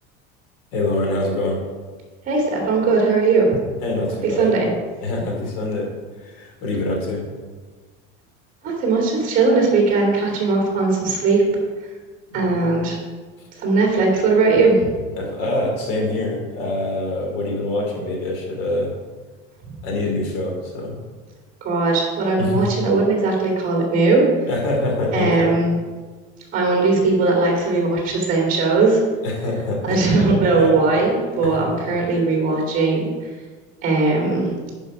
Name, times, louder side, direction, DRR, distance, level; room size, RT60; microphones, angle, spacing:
voice 1, 0.7-1.6 3.8-4.5 5.0-5.9 6.2-7.2 12.3-12.8 15.1-18.9 19.8-21.0 22.4-22.6 24.5-25.6 29.2-30.0 30.4-30.8 31.4-31.8, left 2 dB, 80° left, 0 dB, 3.0 m, -25 dB
voice 2, 2.3-3.5 4.2-4.7 8.6-11.4 12.3-13.0 13.6-14.9 21.6-24.2 25.1-25.7 26.5-29.0 29.9-33.1 33.8-34.5, right 3 dB, 30° right, -1 dB, 2.5 m, -18 dB
10.5 x 5.4 x 4.9 m, 1.4 s
cardioid pair, 180°, 29 cm